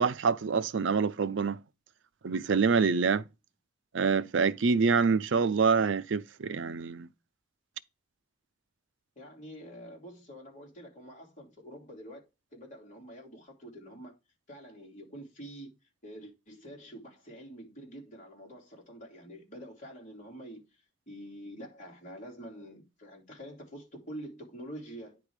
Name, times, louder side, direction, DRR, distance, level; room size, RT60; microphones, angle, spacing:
voice 1, 0.0-1.6 2.2-3.2 3.9-7.1, right 5 dB, 70° right, 0.5 m, -26 dB
voice 2, 9.2-12.2 12.5-14.2 14.5-15.7 16.0-20.6 21.1-25.2, equal, 40° left, 3.0 m, -46 dB
9.7 x 3.5 x 4.7 m
head